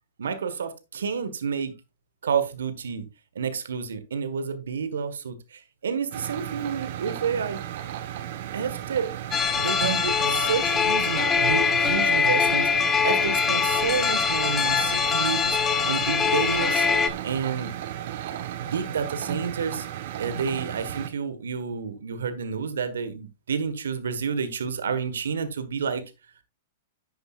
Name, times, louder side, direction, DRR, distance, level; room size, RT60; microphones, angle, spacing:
voice 1, 0.2-1.7 2.2-3.1 3.3-7.6 8.5-9.1 9.6-16.9 17.2-17.7 18.4-26.0, right 6 dB, 75° right, 1.5 m, -30 dB
sound 1, 6.1-21.1, right 11 dB, 60° right, 1.2 m, -35 dB
sound 2, 9.3-17.1, left 6 dB, 20° left, 1.3 m, -23 dB
11.5 x 7.9 x 2.4 m
hypercardioid pair, 110°, 0 cm